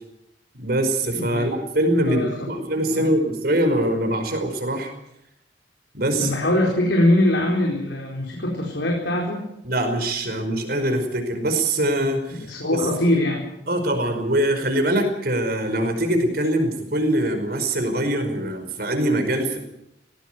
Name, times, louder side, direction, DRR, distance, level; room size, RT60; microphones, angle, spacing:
voice 1, 0.5-4.9 5.9-6.3 9.6-12.4 12.7-13.1 13.7-19.6, right 1 dB, 60° right, 6 dB, 5.1 m, -23 dB
voice 2, 1.1-1.5 2.1-2.3 2.9-3.1 6.2-9.4 12.3-13.5, left 1 dB, 85° left, 0 dB, 4.3 m, -22 dB
19.0 x 17.5 x 9.3 m, 0.82 s
head